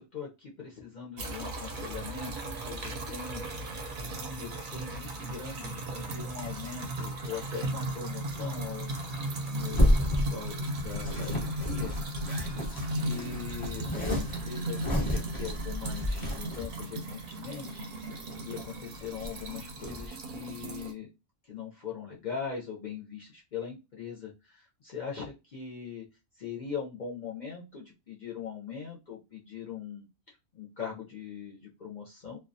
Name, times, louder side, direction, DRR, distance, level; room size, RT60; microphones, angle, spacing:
voice 1, 0.0-2.3 2.7-3.7 4.0-8.9 9.4-11.9 12.5-17.8 18.1-21.1 21.5-26.0 26.4-32.4, left 7 dB, 55° left, -3 dB, 0.5 m, -41 dB
sound 1, 1.2-20.9, right 1 dB, 55° right, 0.6 m, -36 dB
sound 2, 8.3-16.7 17.3-17.4 17.7-18.7 18.9-20.1, equal, 30° left, 0.8 m, -31 dB
2.2 x 2.2 x 2.5 m, 0.26 s
omnidirectional pair, 1.2 m